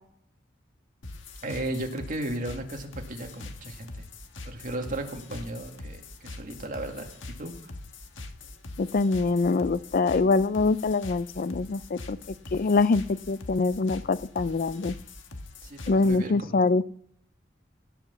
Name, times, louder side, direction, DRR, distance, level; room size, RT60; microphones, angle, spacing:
sound 1, 1.0-16.3, left 2 dB, 80° left, 1.5 m, -43 dB
voice 1, 1.4-4.0 4.4-7.5 15.6-16.6, right 1 dB, 45° right, 3 dB, 2.2 m, -35 dB
voice 2, 8.8-12.2 12.5-14.9 15.9-16.8, left 3 dB, 50° left, 16 dB, 0.4 m, -24 dB
17.0 x 6.0 x 7.3 m, 0.66 s
head